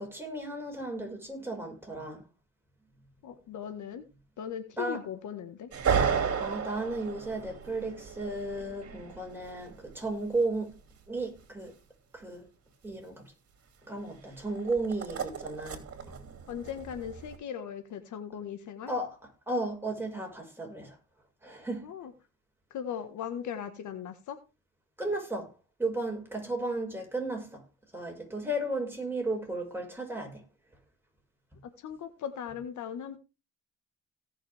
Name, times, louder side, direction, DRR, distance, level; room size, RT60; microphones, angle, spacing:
voice 1, 0.0-2.2 4.8-5.0 6.4-10.8 11.1-11.7 12.1-12.4 12.8-13.2 13.8-16.2 18.9-19.2 19.5-21.0 21.4-21.9 25.0-25.5 25.8-27.6 27.9-30.4, right 2 dB, 5° right, 5.7 m, -34 dB
voice 2, 3.2-4.0 4.4-5.7 14.5-14.6 16.5-18.9 21.8-22.1 22.7-24.4 28.4-28.5 31.8-33.2, left 8 dB, 75° left, 1.6 m, -38 dB
sound 1, 5.7-10.4 14.4-17.4, right 7 dB, 50° right, 2.8 m, -34 dB
17.5 x 6.5 x 3.5 m
cardioid pair, 90°, 30 cm